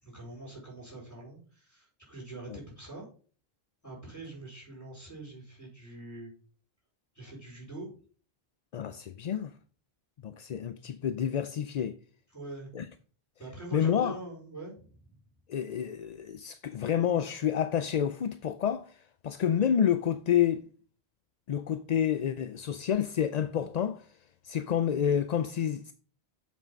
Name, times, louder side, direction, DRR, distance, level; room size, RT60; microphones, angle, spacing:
voice 1, 0.0-3.0 3.8-6.3 7.1-7.9 12.3-12.7 13.4-15.2, right 2 dB, 15° left, 4.8 m, -44 dB
voice 2, 8.7-9.5 10.2-12.0 12.7-12.9 13.7-14.2 15.5-20.7 21.5-24.1 24.4-25.9, left 9 dB, 55° left, 0.5 m, -29 dB
7.4 x 5.6 x 5.3 m
omnidirectional pair, 1.1 m